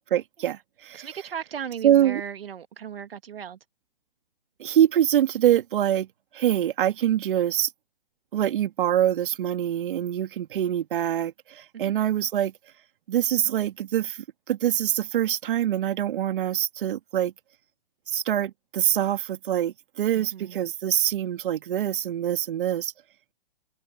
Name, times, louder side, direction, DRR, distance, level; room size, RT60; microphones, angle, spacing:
voice 1, 0.1-1.1 1.8-2.2 4.6-6.1 6.3-7.7 8.3-12.5 13.1-14.2 14.5-17.3 18.1-22.9, right 11 dB, 60° right, 2.1 m, -24 dB
voice 2, 0.9-3.6 11.7-11.9 20.1-20.6, right 8 dB, 80° right, 1.7 m, -37 dB
hypercardioid pair, 130°, 29 cm